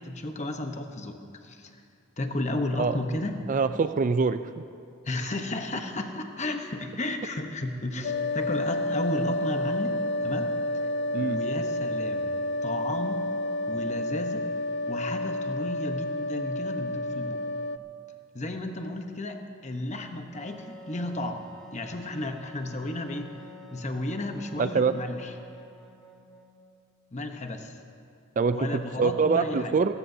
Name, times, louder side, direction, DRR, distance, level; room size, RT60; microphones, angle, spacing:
voice 1, 0.0-1.8 2.2-3.4 5.0-10.5 11.2-12.3 12.6-13.2 13.7-14.4 14.9-17.4 18.3-21.5 21.7-23.3 23.7-25.3 27.1-27.8 28.5-29.8, left 1 dB, 30° left, 5 dB, 1.0 m, -33 dB
voice 2, 3.5-4.4 11.1-11.4 24.6-24.9 28.4-29.9, right 5 dB, 35° right, 11 dB, 0.3 m, -24 dB
sound 1, 8.0-17.8, left 1 dB, 50° left, 0.5 m, -30 dB
Wind instrument woodwind instrument, 20.3-26.8, equal, 5° left, 1.4 m, -49 dB
29.5 x 14.0 x 2.8 m, 2.4 s
head